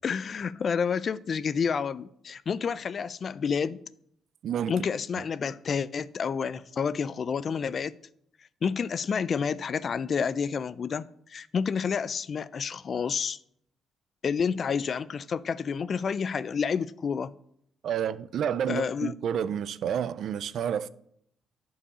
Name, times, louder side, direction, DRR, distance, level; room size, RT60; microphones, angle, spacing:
voice 1, 0.0-3.8 4.7-7.9 8.6-13.4 14.2-17.3 18.7-19.1, left 6 dB, 50° left, 0.4 m, -29 dB
voice 2, 4.4-4.7 17.8-20.9, right 9 dB, 70° right, 0.4 m, -29 dB
9.9 x 4.7 x 5.5 m
cardioid pair, 90°, 0 cm